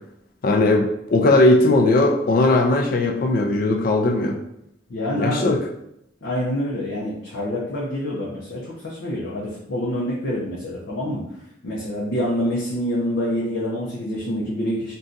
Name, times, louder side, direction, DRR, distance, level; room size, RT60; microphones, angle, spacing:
voice 1, 0.4-4.4 5.2-5.6, left 2 dB, 50° left, 3 dB, 0.4 m, -18 dB
voice 2, 4.9-5.5 6.2-11.2 11.6-14.9, equal, 90° left, -6 dB, 0.6 m, -26 dB
2.6 x 2.3 x 3.7 m, 0.78 s
head